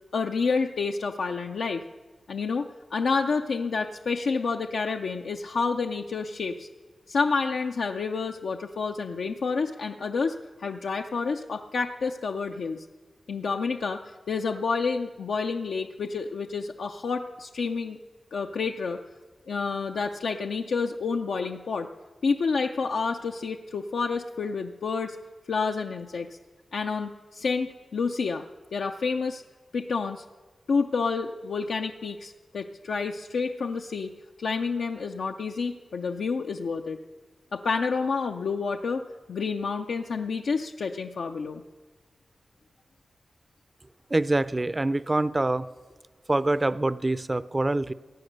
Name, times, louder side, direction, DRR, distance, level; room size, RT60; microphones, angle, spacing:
voice 1, 0.1-1.8 2.3-6.7 7.1-12.9 13.3-18.0 18.3-19.0 19.5-21.9 22.2-25.2 25.5-26.3 26.7-28.4 28.7-29.4 29.7-30.2 30.7-34.1 34.4-37.0 37.5-39.0 39.3-41.6, left 4 dB, 85° left, 3 dB, 0.5 m, -29 dB
voice 2, 44.1-45.7 46.3-47.9, right 2 dB, 30° right, 16 dB, 0.4 m, -25 dB
16.0 x 9.4 x 6.6 m, 1.4 s
cardioid pair, 50°, 0 cm